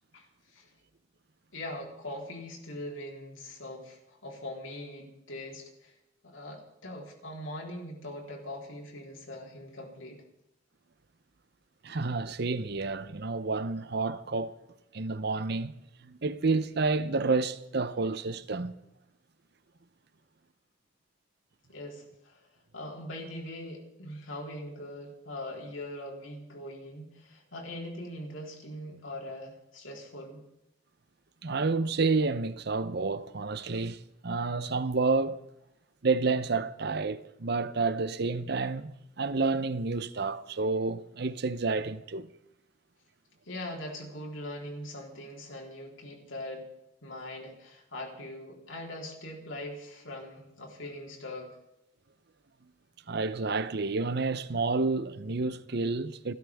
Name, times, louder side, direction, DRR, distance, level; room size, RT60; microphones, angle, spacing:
voice 1, 0.1-0.7 1.5-5.9 6.2-10.2 21.7-22.4 22.7-30.4 43.4-46.7 47.0-51.6, left 1 dB, 80° left, 3.9 m, -41 dB
voice 2, 11.8-14.6 14.9-15.7 16.0-18.7 31.4-35.4 36.0-38.9 39.2-42.3 53.1-56.3, right 3 dB, 55° right, 0.7 m, -29 dB
29.0 x 13.0 x 3.6 m
head